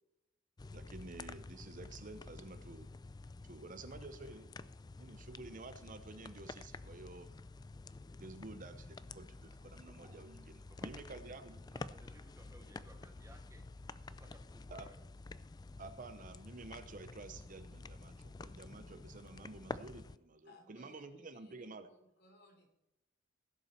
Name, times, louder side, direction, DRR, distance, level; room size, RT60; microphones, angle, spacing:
sound 1, 0.6-20.2, left 3 dB, 20° left, 0.3 m, -50 dB
voice 1, 0.7-2.9 3.4-4.5 5.0-7.3 8.2-10.4 10.8-11.6 14.7-14.9 15.8-21.9, right 3 dB, 45° right, 10 dB, 0.8 m, -51 dB
voice 2, 9.6-10.2 10.6-13.6 14.0-15.0, right 1 dB, 15° right, 6 dB, 1.0 m, -62 dB
voice 3, 20.4-22.7, left 2 dB, 55° left, 2 dB, 3.2 m, -63 dB
16.0 x 7.2 x 4.3 m, 0.90 s
head